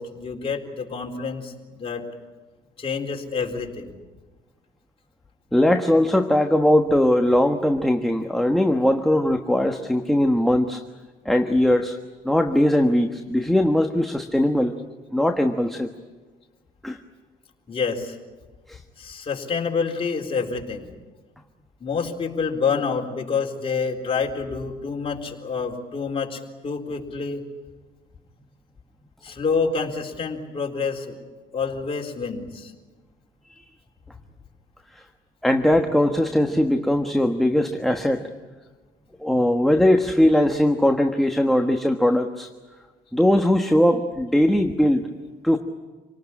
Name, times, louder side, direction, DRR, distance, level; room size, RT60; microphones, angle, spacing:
voice 1, 0.0-2.0 2.8-3.9 17.7-18.2 19.0-20.9 21.8-27.4 29.2-31.2 31.5-32.7, left 5 dB, 35° left, 1 dB, 4.0 m, -27 dB
voice 2, 5.5-10.8 11.2-12.0 12.2-14.8 15.1-15.9 16.8-17.0 18.7-18.8 33.5-33.6 34.9-35.0 35.4-38.3 39.2-42.5 43.1-45.1 45.4-45.6, left 1 dB, ahead, 4 dB, 1.3 m, -20 dB
27.5 x 19.0 x 9.9 m, 1.3 s
cardioid pair, 110°, 17 cm